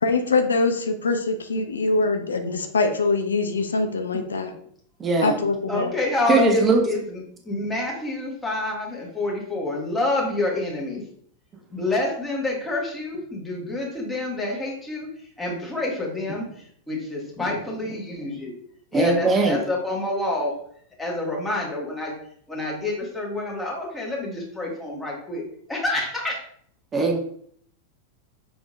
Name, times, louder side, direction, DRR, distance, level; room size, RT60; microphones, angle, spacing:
voice 1, 0.0-4.5 5.2-5.9, left 3 dB, 70° left, 6 dB, 0.4 m, -23 dB
voice 2, 5.0-5.4 6.3-6.8 18.9-19.6 26.9-27.2, right 3 dB, 20° right, 3 dB, 0.7 m, -20 dB
voice 3, 5.7-7.2 7.4-11.0 11.7-15.1 15.4-18.6 18.9-20.5 21.0-22.2 22.5-25.4 25.7-26.4, left 2 dB, 10° left, -3 dB, 1.5 m, -27 dB
6.0 x 3.5 x 2.4 m, 0.63 s
figure-of-eight pair, 90°, 0 cm